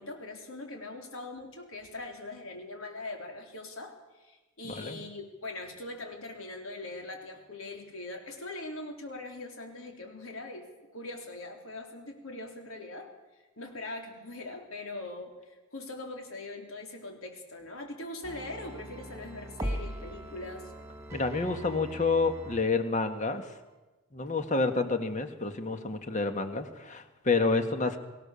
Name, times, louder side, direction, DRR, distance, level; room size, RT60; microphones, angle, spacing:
voice 1, 0.0-10.7 10.9-13.1 13.6-20.7, left 2 dB, 75° left, 2 dB, 4.1 m, -41 dB
voice 2, 4.6-5.0 21.1-23.5 24.1-28.0, left 3 dB, 35° left, 7 dB, 1.7 m, -29 dB
sound 1, 18.2-22.6 23.0-23.1, equal, 15° right, 2.2 m, -40 dB
24.5 x 16.5 x 7.0 m, 1.2 s
head